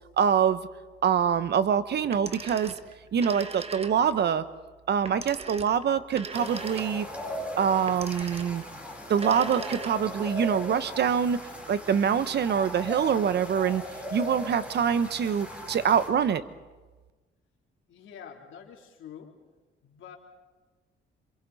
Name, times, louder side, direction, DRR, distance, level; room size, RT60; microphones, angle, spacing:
voice 1, 0.2-0.6 1.0-2.7 3.1-4.4 4.9-7.1 7.6-8.6 9.1-11.4 11.7-13.8 14.1-16.4, right 7 dB, 60° right, 13 dB, 1.1 m, -25 dB
Telephone, 2.0-4.2 5.1-7.2 7.9-8.7 9.1-10.3, right 4 dB, 30° right, 1.4 m, -40 dB
sound 1, 6.3-16.1, left 1 dB, 5° right, 7.3 m, -38 dB
voice 2, 17.9-19.4 19.8-20.2, left 8 dB, 75° left, 1 dB, 3.4 m, -46 dB
27.5 x 26.5 x 4.2 m, 1.3 s
cardioid pair, 90°, 20 cm